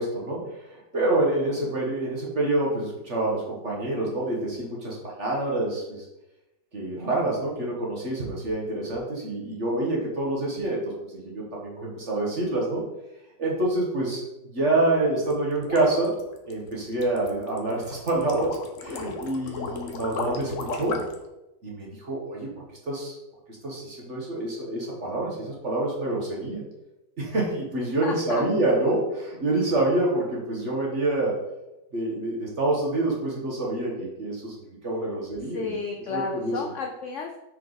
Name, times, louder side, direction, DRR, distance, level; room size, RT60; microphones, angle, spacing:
voice 1, 0.0-6.1 6.7-12.8 13.4-16.1 16.5-21.0 21.6-22.5 22.8-23.1 23.5-26.6 27.2-31.3 31.9-34.5 34.8-35.8 36.1-36.5, right 2 dB, 40° right, -3 dB, 1.5 m, -27 dB
sound 1, 15.2-21.2, left 4 dB, 55° left, 0.9 m, -35 dB
voice 2, 28.0-28.4 35.4-37.4, left 4 dB, 85° left, 3 dB, 0.6 m, -32 dB
5.7 x 4.9 x 4.0 m, 0.94 s
omnidirectional pair, 1.9 m